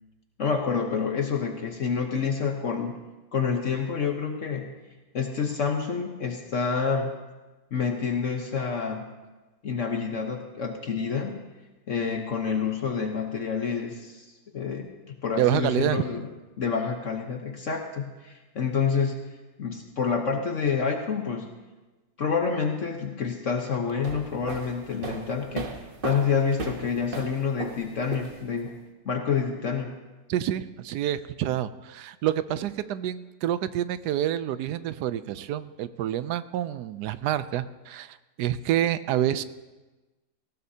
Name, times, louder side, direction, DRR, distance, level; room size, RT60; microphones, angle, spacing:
voice 1, 0.4-3.0 3.3-4.7 5.1-7.1 7.7-9.0 9.6-11.5 11.9-14.2 14.5-16.3 16.6-19.2 19.6-21.5 22.2-25.7 26.0-28.8 29.0-29.9, left 6 dB, 50° left, 3 dB, 1.2 m, -28 dB
voice 2, 15.4-16.0 30.3-39.4, right 11 dB, 75° right, 14 dB, 1.1 m, -28 dB
sound 1, 23.9-28.7, right 4 dB, 40° right, 1.0 m, -37 dB
19.0 x 16.0 x 2.8 m, 1.2 s
omnidirectional pair, 1.8 m